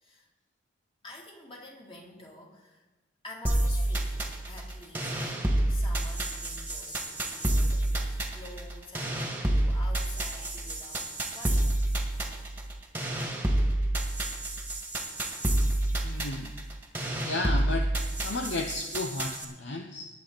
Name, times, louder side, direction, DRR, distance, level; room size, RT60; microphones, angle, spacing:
voice 1, 1.0-2.8 3.2-11.8, left 1 dB, 25° left, -1 dB, 2.6 m, -48 dB
sound 1, 3.4-19.4, right 1 dB, 10° right, 1.8 m, -29 dB
voice 2, 16.0-16.5 17.2-17.9 18.2-20.1, left 2 dB, 65° left, 4 dB, 0.9 m, -33 dB
20.5 x 8.3 x 4.0 m, 1.1 s
head